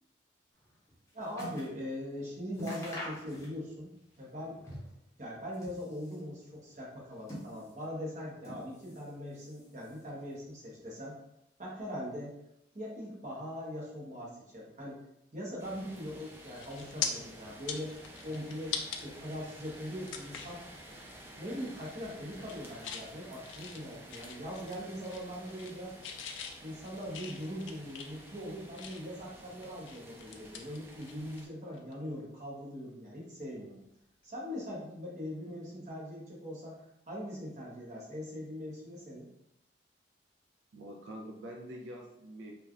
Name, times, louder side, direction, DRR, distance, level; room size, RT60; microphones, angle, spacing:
sound 1, 0.6-1.8 2.1-2.2 2.5-3.8 4.1-5.0 5.4-6.3 6.9-7.9 8.4-9.1 9.4-10.2 10.8-10.9, equal, 15° left, 0.7 m, -45 dB
voice 1, 1.1-3.9 4.2-4.6 5.2-11.1 11.6-12.3 12.7-15.0 15.3-17.9 18.2-20.6 21.4-25.9 26.6-33.8 34.2-36.8 37.1-39.3, equal, 40° right, -4 dB, 0.8 m, -41 dB
sound 2, 15.6-31.5, right 1 dB, 10° right, 0.4 m, -52 dB
sound 3, 16.6-17.1 17.5-19.0 19.5-19.6 20.1-20.6 21.0-21.2 21.5-21.9 22.3-23.1 23.5-24.8 25.1-25.8 26.0-29.2 29.6-31.5 31.7-31.9 33.8-34.0, left 7 dB, 90° left, 0.3 m, -41 dB
voice 2, 40.7-42.5, equal, 85° right, 1 dB, 0.4 m, -45 dB
3.2 x 2.2 x 2.4 m, 0.80 s
head